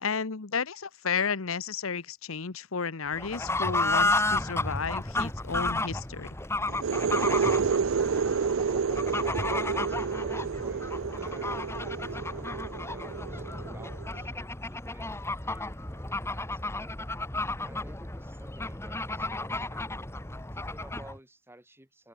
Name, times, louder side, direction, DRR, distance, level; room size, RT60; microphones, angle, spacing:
voice 1, 0.0-6.3, left 5 dB, 80° left, 1.1 m, -32 dB
Fowl / Bird, 3.1-21.2, left 2 dB, 15° left, 1.4 m, -32 dB
sound 1, 6.7-14.2, right 6 dB, 70° right, 0.5 m, -30 dB
voice 2, 9.1-10.9 11.1-17.0 17.6-19.9 20.5-22.1, right 1 dB, 10° right, 3.8 m, -52 dB
open air
head